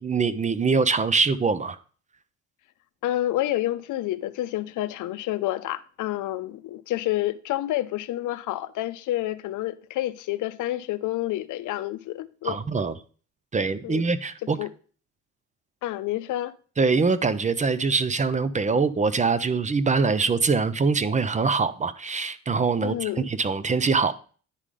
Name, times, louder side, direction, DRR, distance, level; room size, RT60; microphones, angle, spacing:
voice 1, 0.0-1.8 12.4-12.9 13.5-14.6 16.8-24.1, right 4 dB, 25° right, 0.5 m, -23 dB
voice 2, 3.0-12.6 13.8-14.0 14.6-14.7 15.8-16.5 22.8-23.3, left 15 dB, 80° left, 0.6 m, -29 dB
9.9 x 3.7 x 4.9 m
cardioid pair, 90°, 30 cm